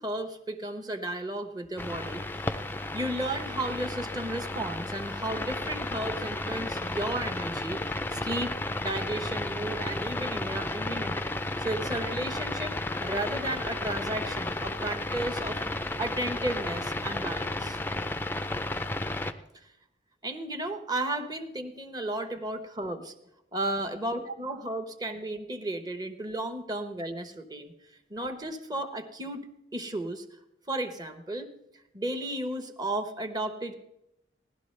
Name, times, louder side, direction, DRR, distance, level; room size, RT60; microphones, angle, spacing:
voice 1, 0.0-2.6 2.9-8.5 8.8-15.6 16.0-17.8 19.5-19.7 20.2-23.1 23.5-27.7 28.1-29.5 29.7-30.2 30.7-31.5 31.9-33.7, right 1 dB, 20° right, 7 dB, 1.0 m, -34 dB
sound 1, 1.8-19.3, left 2 dB, 10° left, 0.4 m, -33 dB
17.5 x 11.5 x 3.2 m, 0.82 s
head